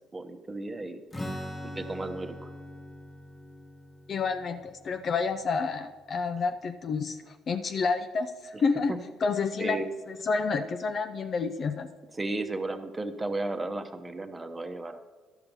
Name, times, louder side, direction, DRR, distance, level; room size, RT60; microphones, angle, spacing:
voice 1, 0.1-1.0 1.6-2.5 9.6-9.9 12.2-15.0, right 2 dB, 25° right, 7 dB, 1.0 m, -34 dB
Strum, 1.1-6.7, equal, 20° left, 1.2 m, -42 dB
voice 2, 4.1-8.9 9.2-9.8 10.1-11.9, left 4 dB, 50° left, 8 dB, 0.5 m, -29 dB
12.0 x 5.8 x 5.3 m, 1.4 s
supercardioid pair, 65°, 0 cm